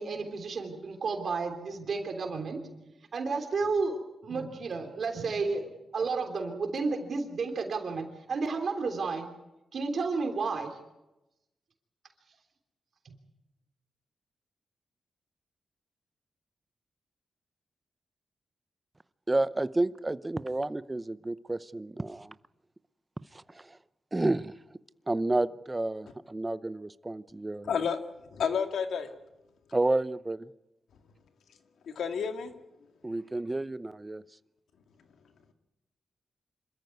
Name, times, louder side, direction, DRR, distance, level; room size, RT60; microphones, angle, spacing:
voice 1, 0.0-9.3 9.7-10.8 13.0-13.1, right 4 dB, 60° right, 5 dB, 3.3 m, -32 dB
voice 2, 19.3-22.3 23.3-23.8 24.1-24.6 25.1-27.7 29.7-30.5 33.0-34.2, right 2 dB, 20° right, 16 dB, 0.7 m, -30 dB
voice 3, 27.7-28.0 28.3-29.1 31.8-32.5, left 7 dB, 85° left, 7 dB, 2.0 m, -30 dB
26.0 x 14.0 x 9.5 m, 0.98 s
cardioid pair, 85°, 0 cm